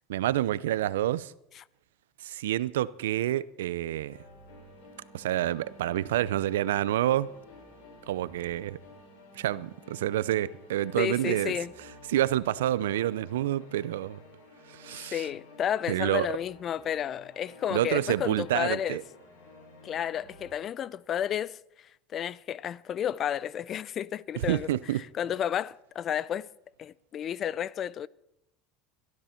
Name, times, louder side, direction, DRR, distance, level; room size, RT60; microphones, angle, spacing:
voice 1, 0.1-1.3 2.2-4.2 5.1-7.3 8.1-8.8 9.3-11.5 12.1-14.2 14.7-15.3 15.9-16.4 17.7-19.0 24.4-25.0, right 13 dB, 85° right, 0.6 m, -28 dB
sound 1, 4.1-20.5, left 2 dB, 80° left, 6.9 m, -52 dB
voice 2, 11.0-11.7 15.1-19.0 19.8-24.7 25.2-26.5 26.8-28.1, left 9 dB, 40° left, 0.5 m, -32 dB
22.0 x 13.0 x 4.5 m
hypercardioid pair, 95°, 0 cm